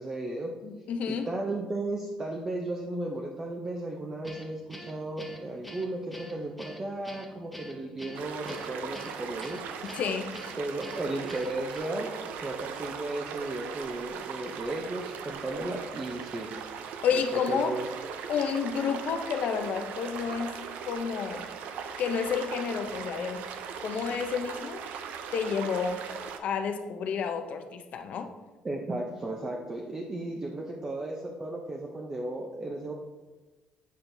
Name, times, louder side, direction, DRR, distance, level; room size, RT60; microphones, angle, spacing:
voice 1, 0.0-0.5 1.1-9.6 10.6-12.1 12.4-16.5 17.1-17.9 28.6-32.9, right 2 dB, 25° right, 0 dB, 0.6 m, -35 dB
voice 2, 0.6-1.3 9.9-10.4 17.0-17.8 18.3-20.6 20.8-21.4 22.0-23.5 23.8-24.8 25.3-26.0 26.4-28.3, left 6 dB, 65° left, 7 dB, 0.6 m, -30 dB
Guitar, 4.2-11.8, equal, ahead, 0.8 m, -46 dB
sound 1, 8.1-26.4, right 7 dB, 85° right, 0.5 m, -39 dB
8.2 x 4.3 x 2.6 m, 1.2 s
cardioid pair, 115°, 3 cm